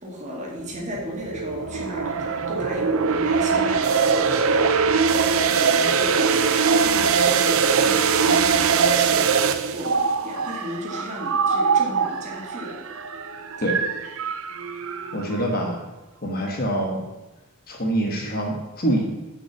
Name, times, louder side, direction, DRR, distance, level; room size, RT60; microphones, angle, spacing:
voice 1, 0.0-9.4 9.7-12.9, equal, 35° right, -3 dB, 2.3 m, -35 dB
sound 1, 0.8-15.5, right 5 dB, 70° right, 0.6 m, -22 dB
voice 2, 15.1-15.8 16.2-17.0 17.7-19.0, right 1 dB, 45° left, 1 dB, 1.4 m, -25 dB
6.9 x 5.7 x 7.1 m, 1.1 s
head